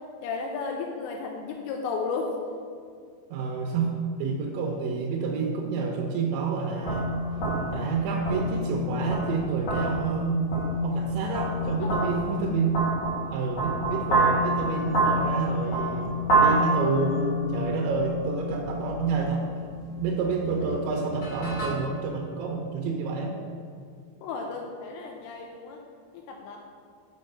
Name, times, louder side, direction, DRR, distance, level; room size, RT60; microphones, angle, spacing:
voice 1, 0.2-2.4 11.8-12.4 24.2-25.8 26.1-26.6, left 4 dB, 85° left, 1 dB, 3.1 m, -34 dB
voice 2, 3.3-7.1 7.7-10.5 10.8-12.8 13.3-19.5 20.0-23.4, right 5 dB, 80° right, 0 dB, 2.8 m, -29 dB
sound 1, 6.8-21.7, right 1 dB, 45° left, 2.3 m, -28 dB
7.4 x 4.5 x 5.4 m, 2.2 s
omnidirectional pair, 5.6 m